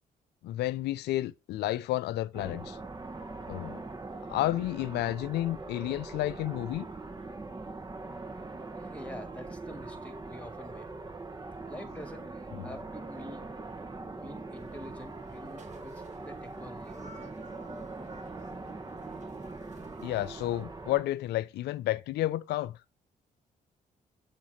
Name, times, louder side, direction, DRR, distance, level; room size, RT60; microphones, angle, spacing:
voice 1, 0.4-2.8 3.5-3.8 4.3-6.9 12.5-12.6 20.0-22.7, left 15 dB, 80° left, 0.5 m, -31 dB
sound 1, 2.3-21.0, right 3 dB, 25° right, 1.5 m, -42 dB
voice 2, 8.8-10.9 11.7-13.5 14.2-17.2, left 1 dB, 10° left, 2.1 m, -47 dB
sound 2, 14.5-20.6, right 3 dB, 45° right, 1.7 m, -55 dB
7.1 x 3.1 x 5.5 m
supercardioid pair, 60°, 17 cm